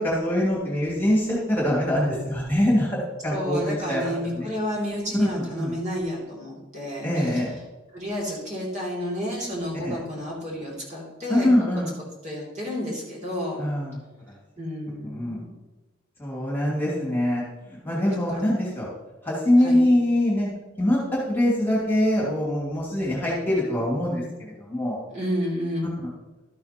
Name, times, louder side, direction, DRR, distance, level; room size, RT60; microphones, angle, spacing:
voice 1, 0.0-4.5 5.1-5.7 7.0-7.6 9.8-10.0 11.3-12.0 13.6-14.0 14.3-14.4 15.0-15.4 16.2-18.9 19.2-20.5 20.8-25.0, left 1 dB, 10° left, -5 dB, 2.5 m, -24 dB
voice 2, 3.3-7.1 7.9-11.5 12.2-13.6 14.6-15.5 18.1-18.4 19.6-19.8 25.1-26.0, equal, 35° right, -4 dB, 2.9 m, -31 dB
12.5 x 8.8 x 3.0 m, 1.2 s
head